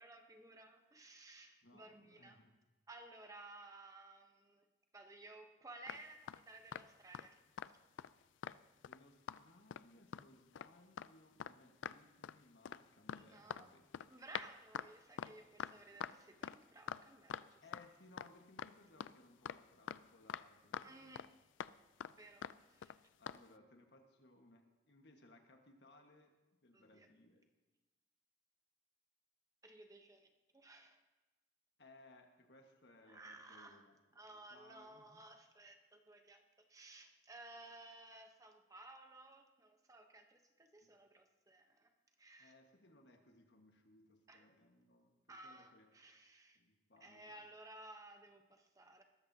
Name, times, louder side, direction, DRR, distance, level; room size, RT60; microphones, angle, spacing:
voice 1, 0.0-2.4 2.9-4.7 4.9-7.4 13.2-13.7 14.1-17.6 20.8-21.3 22.2-23.0 26.7-27.1 29.6-31.0 33.1-33.8 34.1-36.4 36.7-41.9 42.2-42.5 44.3-44.5 45.3-46.6 47.0-49.0, right 2 dB, 20° right, 4 dB, 0.9 m, -57 dB
voice 2, 1.6-2.5 8.8-14.0 15.7-16.0 17.6-21.2 22.0-22.2 23.2-26.3 26.6-27.4 31.8-34.0 34.2-35.2 40.8-40.9 42.4-45.9 46.5-47.4, left 2 dB, 65° left, 4 dB, 1.5 m, -64 dB
sound 1, 5.9-7.3 7.6-7.7 8.0-9.0 9.3-9.4 9.7-10.3 10.5-10.7 11.0-11.1 11.4-11.5 11.8-12.4 12.6-17.9 18.2-18.3 18.6-20.5 20.7-21.3 21.6-21.7 22.0-22.2 22.4-22.6 22.8-23.0 23.3-23.4, left 8 dB, 85° left, 0.3 m, -45 dB
20.5 x 13.5 x 2.8 m, 1.1 s
head